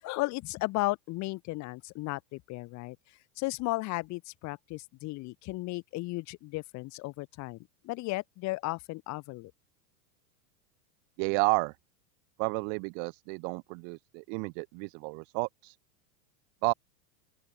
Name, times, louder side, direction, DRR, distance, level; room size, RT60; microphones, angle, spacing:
voice 1, 0.0-3.0 3.4-7.6 7.8-9.5, left 21 dB, 35° left, 7.8 m, -35 dB
voice 2, 11.2-11.8 12.4-15.8 16.6-16.7, right 40 dB or more, 20° right, 0.4 m, -31 dB
open air
supercardioid pair, 165°, 47 cm